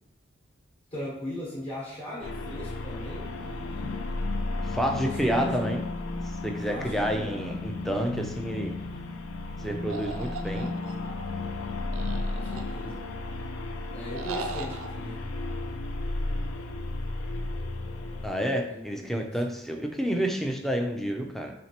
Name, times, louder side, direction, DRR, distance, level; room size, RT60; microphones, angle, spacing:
voice 1, 0.9-4.0 4.9-5.7 6.7-7.6 12.4-13.1 13.9-15.2 18.7-19.5, equal, 30° left, -7 dB, 1.1 m, -39 dB
sound 1, 2.2-18.3, left 2 dB, 85° left, 0.5 m, -34 dB
voice 2, 4.6-5.8 6.4-8.7 9.6-10.7 18.2-21.5, equal, ahead, 2 dB, 0.4 m, -29 dB
sound 2, 9.9-11.2 11.9-13.1 14.1-14.9, right 3 dB, 85° right, 0.4 m, -38 dB
4.5 x 3.2 x 2.9 m, 0.88 s
head